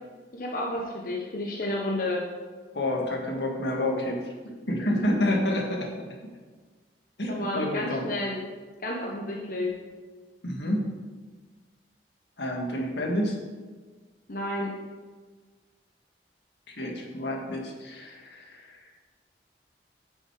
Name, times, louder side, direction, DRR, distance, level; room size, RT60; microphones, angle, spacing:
voice 1, 0.3-2.2 7.3-8.4 8.8-9.7 14.3-14.7, left 1 dB, 50° left, -2 dB, 1.1 m, -31 dB
voice 2, 2.7-6.1 7.2-8.0 10.4-10.9 12.4-13.4 16.7-18.8, left 1 dB, 80° left, 0 dB, 1.8 m, -29 dB
9.3 x 6.4 x 5.1 m, 1.4 s
head